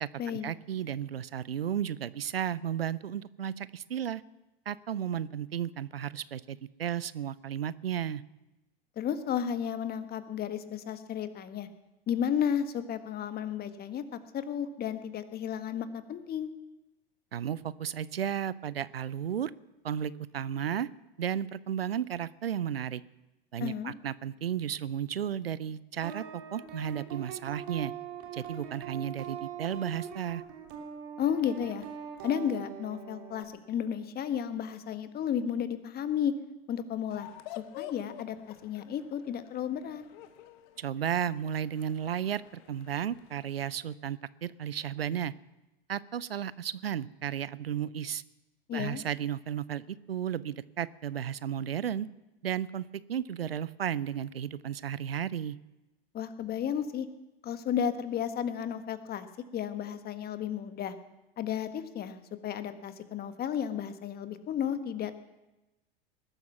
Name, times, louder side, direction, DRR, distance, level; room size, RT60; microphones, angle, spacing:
voice 1, 0.0-4.2 4.7-8.2 17.3-19.5 19.8-20.9 21.2-23.0 23.5-27.9 28.3-30.4 40.8-45.3 45.9-48.2 48.7-52.1 52.4-55.6, right 9 dB, 85° right, 20 dB, 0.6 m, -34 dB
voice 2, 9.0-11.7 12.1-16.5 23.6-23.9 31.2-31.8 32.2-36.3 36.7-37.3 37.6-40.0 48.7-49.0 56.1-57.1 57.4-59.3 59.5-60.9 61.4-65.2, left 8 dB, 30° left, 10 dB, 1.4 m, -33 dB
sound 1, 26.0-33.4, right 8 dB, 50° right, 3.1 m, -42 dB
sound 2, 37.1-43.5, left 13 dB, 55° left, 1.2 m, -49 dB
20.5 x 12.0 x 5.9 m, 1.0 s
figure-of-eight pair, 85°, 29 cm